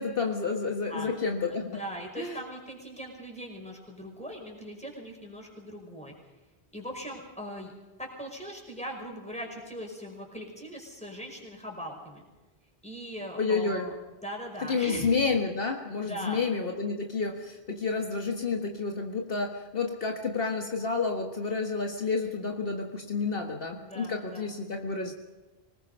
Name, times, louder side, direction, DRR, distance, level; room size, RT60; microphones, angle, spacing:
voice 1, 0.0-1.7 2.2-2.4 13.4-13.9 14.7-25.1, left 4 dB, 60° left, 3 dB, 1.7 m, -30 dB
voice 2, 1.5-6.1 6.7-7.7 8.0-12.3 12.8-14.0 14.2-15.1 16.0-16.4 23.8-24.5, equal, 5° left, 0 dB, 5.3 m, -40 dB
25.0 x 19.5 x 5.5 m, 1.2 s
omnidirectional pair, 1.1 m